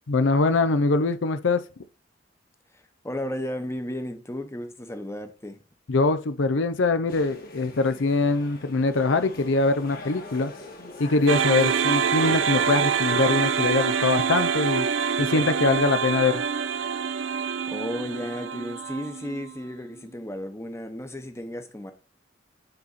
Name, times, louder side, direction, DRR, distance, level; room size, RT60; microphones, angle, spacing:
voice 1, 0.1-1.6 5.9-10.5 11.0-14.9 15.2-16.4, left 3 dB, 75° left, 0.6 m, -23 dB
voice 2, 3.0-5.6 17.7-21.9, left 1 dB, 15° left, 0.9 m, -34 dB
sound 1, 7.1-13.5, left 2 dB, 50° left, 1.8 m, -44 dB
sound 2, 11.3-19.5, right 7 dB, 85° right, 0.6 m, -26 dB
9.9 x 4.1 x 4.1 m
head